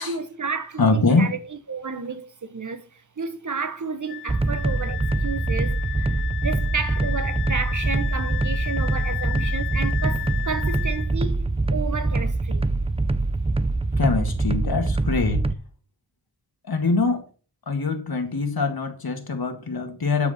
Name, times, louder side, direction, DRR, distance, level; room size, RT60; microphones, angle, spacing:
voice 1, 0.0-12.7, right 5 dB, 45° right, 1.1 m, -32 dB
voice 2, 0.8-1.3 14.0-15.4 16.6-17.2 17.7-20.3, left 3 dB, 60° left, 2.1 m, -23 dB
Wind instrument woodwind instrument, 4.1-11.1, left 18 dB, 80° left, 1.4 m, -34 dB
sound 1, 4.3-15.5, right 2 dB, 15° right, 0.5 m, -24 dB
12.0 x 5.0 x 6.7 m
wide cardioid pair, 90°, 41 cm